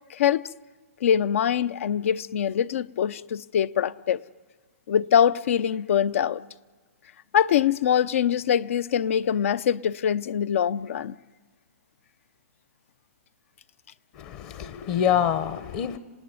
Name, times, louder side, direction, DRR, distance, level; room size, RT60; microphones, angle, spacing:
voice 1, 0.1-0.4 1.0-4.2 4.9-6.4 7.3-11.1, left 9 dB, 65° left, 0.7 m, -23 dB
voice 2, 14.2-16.0, left 9 dB, 35° left, 1.0 m, -26 dB
26.5 x 18.0 x 9.5 m
hypercardioid pair, 145°, 8 cm